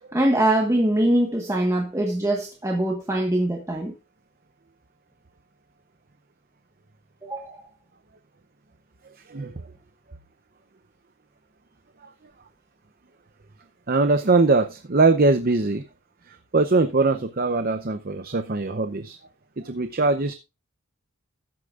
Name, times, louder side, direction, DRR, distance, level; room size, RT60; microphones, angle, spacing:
voice 1, 0.1-3.9 7.2-7.6, right 1 dB, 15° right, 1.3 m, -23 dB
voice 2, 13.9-15.8 16.3-19.2 19.6-20.3, right 3 dB, 40° right, 0.7 m, -21 dB
13.5 x 9.9 x 2.5 m
head